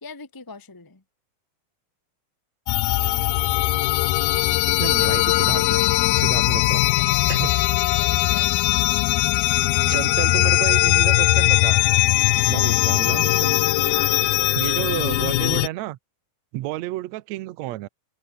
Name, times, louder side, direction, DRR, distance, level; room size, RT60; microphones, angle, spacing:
voice 1, 0.0-1.0 7.2-7.4 8.0-9.0 9.6-10.0 13.8-14.4, left 4 dB, 15° left, 0.8 m, -42 dB
sound 1, 2.7-15.7, left 19 dB, 90° left, 2.6 m, -20 dB
voice 2, 4.7-5.8 6.1-6.8 7.3-7.5 9.9-11.8 12.5-13.5 14.5-16.0 16.5-17.9, right 16 dB, 75° right, 1.6 m, -30 dB
open air
omnidirectional pair, 4.2 m